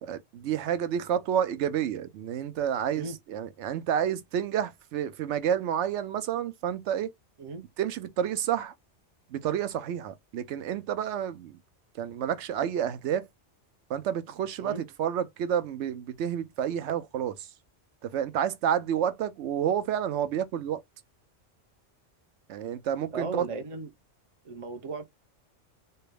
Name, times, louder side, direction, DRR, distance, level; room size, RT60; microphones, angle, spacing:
voice 1, 0.0-7.1 7.8-8.7 9.3-11.6 11.9-13.3 13.9-17.5 18.0-20.8 22.5-23.5, right 9 dB, 80° right, 0.9 m, -29 dB
voice 2, 23.1-23.9 24.4-25.0, right 4 dB, 45° right, 0.4 m, -36 dB
3.3 x 2.2 x 3.2 m
omnidirectional pair, 1.2 m